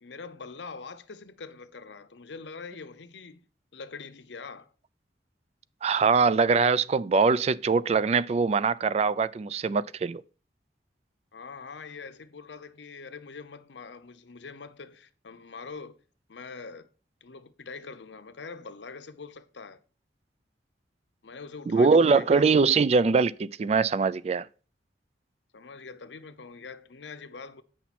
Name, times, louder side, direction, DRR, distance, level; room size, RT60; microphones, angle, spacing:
voice 1, 0.0-3.4 3.7-4.7 11.3-16.0 16.3-16.9 17.2-19.8 21.2-22.5 25.5-27.6, left 4 dB, 85° left, 0.7 m, -43 dB
voice 2, 5.8-10.2 21.7-24.5, right 4 dB, 35° right, 0.3 m, -22 dB
9.2 x 5.9 x 4.2 m
head